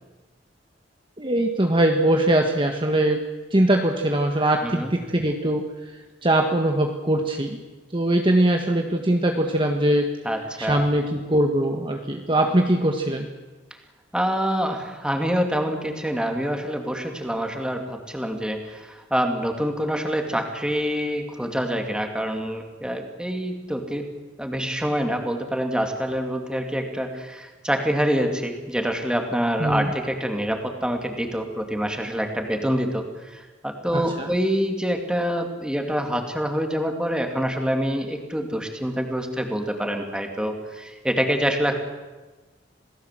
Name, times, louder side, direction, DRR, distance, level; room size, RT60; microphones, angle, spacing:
voice 1, 1.2-3.2 3.5-5.6 6.2-7.6 7.9-10.1 10.6-13.3 29.6-29.9 33.9-34.3, right 1 dB, 30° right, 3 dB, 1.5 m, -21 dB
voice 2, 10.2-10.9 14.1-24.1 24.4-41.8, equal, 5° right, 4 dB, 2.8 m, -26 dB
27.5 x 18.0 x 7.7 m, 1.2 s
head